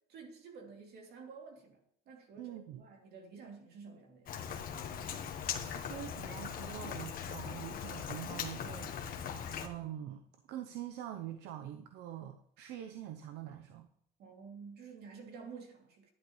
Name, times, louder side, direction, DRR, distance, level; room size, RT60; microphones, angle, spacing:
voice 1, 0.0-1.8 2.1-4.3 14.2-16.1, right 5 dB, 70° right, 2 dB, 2.8 m, -51 dB
voice 2, 2.4-2.8 5.6-8.9 9.6-10.2 10.5-13.9, right 11 dB, 85° right, 7 dB, 0.8 m, -44 dB
Rain, 4.3-9.7, left 8 dB, 60° left, 1.4 m, -40 dB
12.0 x 10.5 x 3.2 m, 0.73 s
cardioid pair, 110°, 17 cm